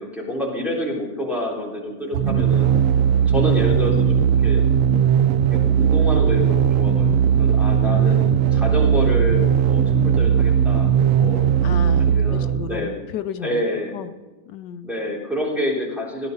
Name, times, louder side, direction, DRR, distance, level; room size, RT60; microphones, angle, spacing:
voice 1, 0.0-2.7 3.3-4.6 5.5-10.9 11.2-11.4 12.0-13.0 13.4-14.0 14.8-16.3, left 1 dB, ahead, -5 dB, 3.8 m, -28 dB
sound 1, 2.1-12.9, right 8 dB, 70° right, 0.7 m, -18 dB
voice 2, 7.9-8.3 11.6-13.6 13.9-14.1 14.5-14.9, left 9 dB, 80° left, 10 dB, 1.2 m, -33 dB
15.5 x 11.0 x 5.4 m, 1.2 s
omnidirectional pair, 1.8 m